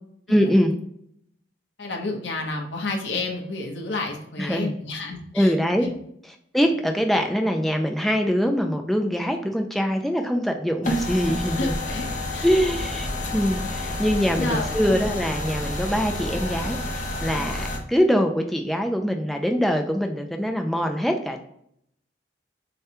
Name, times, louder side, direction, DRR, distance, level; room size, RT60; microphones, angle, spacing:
voice 1, 0.3-0.7 4.4-4.7 5.3-5.9 6.5-11.7 12.4-13.1 13.3-21.4, equal, ahead, 3 dB, 0.3 m, -23 dB
voice 2, 1.8-5.5 5.8-5.9 11.5-12.5 14.4-14.7, left 2 dB, 80° left, 1 dB, 1.0 m, -30 dB
sound 1, 10.8-17.8, left 1 dB, 45° left, 0.8 m, -29 dB
6.5 x 2.2 x 2.9 m, 0.70 s
head